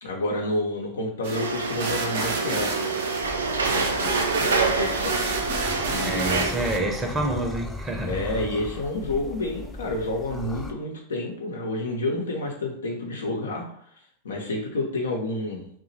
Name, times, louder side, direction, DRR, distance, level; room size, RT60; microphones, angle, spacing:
voice 1, 0.0-3.0 3.7-5.5 5.9-6.6 8.0-13.7 14.2-15.7, left 2 dB, 75° left, 0 dB, 0.8 m, -30 dB
sound 1, 1.2-6.8, right 4 dB, 65° right, 0.8 m, -31 dB
sound 2, 1.3-6.5, right 4 dB, 80° right, 0.4 m, -27 dB
sound 3, 3.2-10.7, left 1 dB, 10° left, 0.5 m, -37 dB
voice 2, 6.0-8.2, right 2 dB, 20° right, 1 dB, 0.8 m, -28 dB
2.9 x 2.4 x 4.0 m, 0.66 s
figure-of-eight pair, 90°, 0 cm